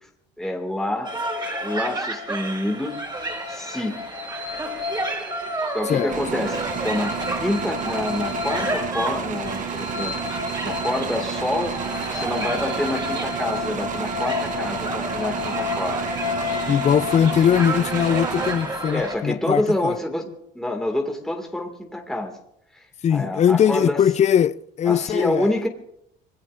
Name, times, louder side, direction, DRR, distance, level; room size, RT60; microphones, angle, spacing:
voice 1, 0.4-1.2 1.6-3.0 3.5-4.0 5.7-11.8 12.1-16.0 18.9-22.3 22.7-22.8 23.1-24.0 24.9-25.7, left 1 dB, ahead, 2.1 m, -27 dB
sound 1, 1.0-19.1, left 1 dB, 20° right, 4.7 m, -29 dB
sound 2, 6.1-19.1, right 7 dB, 40° right, 1.0 m, -31 dB
voice 2, 16.7-20.0 23.0-25.5, left 9 dB, 35° left, 0.5 m, -20 dB
26.0 x 20.5 x 2.6 m
cardioid pair, 115°, 19 cm